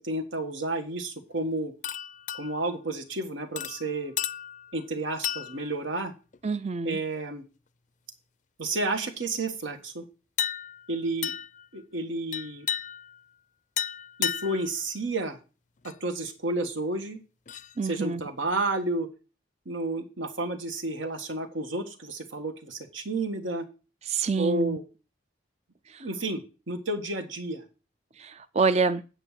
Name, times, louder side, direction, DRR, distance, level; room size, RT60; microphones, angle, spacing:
voice 1, 0.0-1.7 2.3-4.1 4.7-6.1 6.8-7.4 8.6-10.0 10.9-11.3 11.7-12.7 14.2-15.4 15.8-17.2 17.8-19.1 19.6-23.7 24.4-24.8 26.0-27.6, right 2 dB, 80° right, 6 dB, 1.7 m, -31 dB
sound 1, 1.8-2.7 3.6-4.8 5.2-5.8 6.3-6.6 10.4-10.9 11.2-11.7 12.3-13.2 13.8-14.7 15.8-15.9 17.5-17.7, left 10 dB, 40° left, 0.4 m, -33 dB
voice 2, 6.4-7.0 17.8-18.2 24.1-24.8 28.2-29.0, right 4 dB, 35° right, 13 dB, 0.4 m, -26 dB
9.2 x 5.5 x 7.5 m, 0.33 s
head